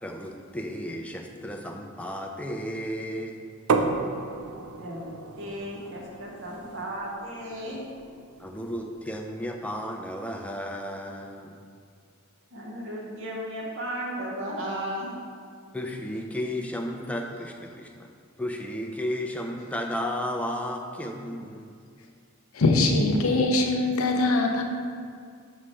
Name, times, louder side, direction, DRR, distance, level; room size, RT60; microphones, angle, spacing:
voice 1, 0.0-3.5 8.4-11.6 15.7-18.1 18.4-21.7, equal, 5° left, 2 dB, 0.4 m, -33 dB
sound 1, 3.7-9.3, right 4 dB, 80° right, 0.4 m, -33 dB
voice 2, 4.8-7.8 12.5-15.2, equal, 60° right, -4 dB, 1.3 m, -35 dB
voice 3, 22.5-24.6, left 2 dB, 80° left, 2 dB, 0.7 m, -22 dB
6.1 x 3.2 x 5.6 m, 2.2 s
head